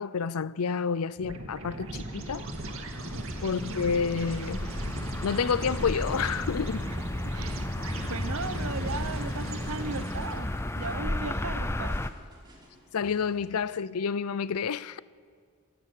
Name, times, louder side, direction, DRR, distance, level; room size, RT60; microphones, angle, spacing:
voice 1, 0.0-2.5 3.4-4.6 5.2-6.9 12.9-15.0, left 6 dB, 85° left, 0.5 m, -29 dB
sound 1, 1.2-10.6, right 1 dB, 65° right, 2.2 m, -38 dB
sound 2, 1.8-12.1, left 1 dB, 10° left, 0.5 m, -34 dB
sound 3, 5.0-13.9, equal, 20° right, 4.4 m, -58 dB
voice 2, 7.2-7.7 8.0-12.0, right 4 dB, 80° right, 1.0 m, -37 dB
26.5 x 13.5 x 8.3 m
head